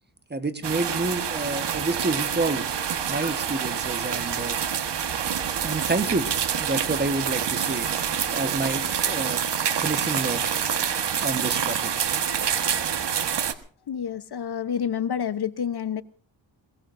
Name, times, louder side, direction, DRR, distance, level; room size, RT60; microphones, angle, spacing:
voice 1, 0.3-2.6 3.1-4.6 5.6-6.3 6.6-7.9 8.3-9.4 9.8-10.4 11.2-11.9, right 3 dB, 20° right, 9 dB, 1.4 m, -28 dB
sound 1, 0.6-13.5, right 8 dB, 65° right, 1.5 m, -27 dB
voice 2, 13.9-16.0, left 8 dB, 60° left, 13 dB, 1.0 m, -28 dB
21.5 x 21.5 x 2.7 m, 0.41 s
cardioid pair, 95°, 44 cm